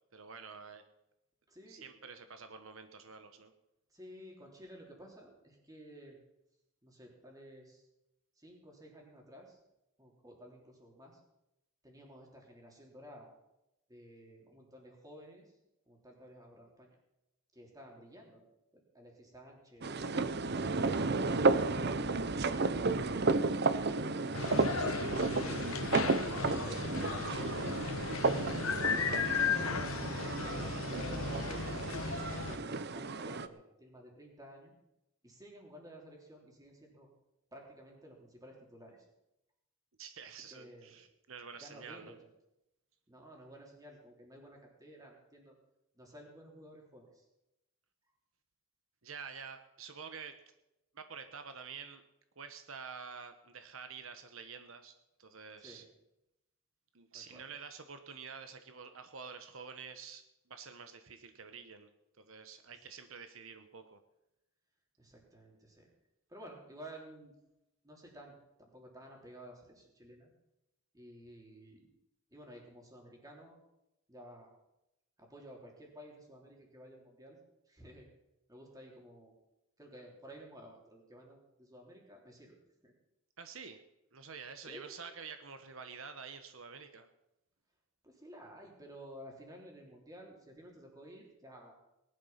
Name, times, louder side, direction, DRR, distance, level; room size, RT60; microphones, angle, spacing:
voice 1, 0.1-0.8 1.7-3.5 40.0-42.2 49.0-50.4 50.9-52.0 52.4-54.9 55.2-55.8 56.9-61.9 62.2-64.0 83.4-83.8 84.1-87.1, right 6 dB, 70° right, 8 dB, 1.0 m, -48 dB
voice 2, 1.5-1.8 3.9-6.2 6.8-7.9 8.4-9.6 10.0-11.2 11.8-13.3 13.9-15.6 15.9-17.0 17.5-18.4 18.7-19.9 26.5-29.8 30.4-31.8 32.4-34.7 35.2-37.1 37.5-39.1 40.3-41.0 41.5-42.2 43.1-45.6 46.0-47.3 55.6-55.9 57.1-57.4 62.7-62.8 65.0-65.9 66.3-67.4 67.8-70.3 70.9-71.9 72.3-73.6 74.1-74.5 75.2-77.4 77.7-78.1 78.5-79.3 79.8-82.9 84.7-84.9 88.0-91.8, equal, 15° right, 0 dB, 3.4 m, -53 dB
sound 1, 19.8-33.5, right 3 dB, 50° right, 0.7 m, -33 dB
sound 2, 24.3-32.6, left 5 dB, 75° left, 1.1 m, -35 dB
19.0 x 11.0 x 5.7 m, 0.91 s
head